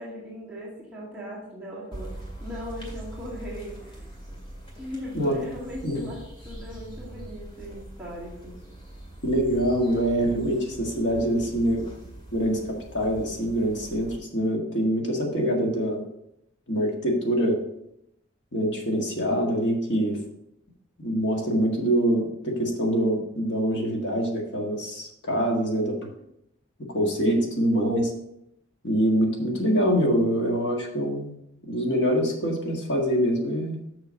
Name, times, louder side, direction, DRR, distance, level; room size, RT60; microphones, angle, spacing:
voice 1, 0.0-4.0 4.8-8.6, equal, 5° right, -10 dB, 2.3 m, -39 dB
sound 1, 1.9-14.2, right 1 dB, 25° left, 2.1 m, -42 dB
voice 2, 9.2-11.8 12.3-12.6 12.9-16.1 16.7-17.6 18.5-20.2 21.0-26.0 26.9-28.1 28.8-31.3 31.7-33.8, equal, 70° left, 0 dB, 1.8 m, -24 dB
6.5 x 6.1 x 5.2 m, 0.79 s
head